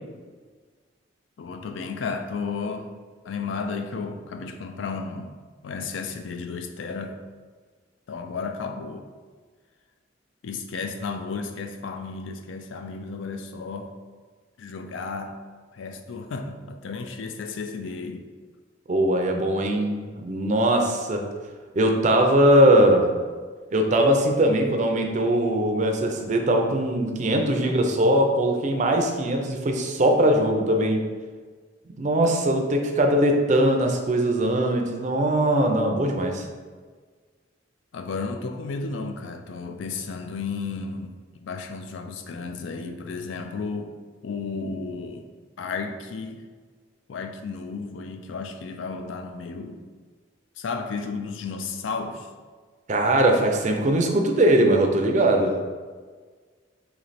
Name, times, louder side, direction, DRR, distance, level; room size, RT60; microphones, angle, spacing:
voice 1, 1.4-2.9 3.2-5.4 5.6-7.2 8.1-9.1 10.4-13.9 14.6-15.4 15.7-18.3 32.2-32.4 37.9-44.0 44.2-45.3 45.6-46.4 47.1-49.8 50.6-52.3, left 4 dB, 75° left, 6 dB, 0.4 m, -33 dB
voice 2, 18.9-21.3 21.7-23.1 23.7-31.0 32.0-36.4 52.9-55.6, right 1 dB, 40° right, 3 dB, 0.4 m, -21 dB
3.1 x 2.9 x 4.0 m, 1.5 s
head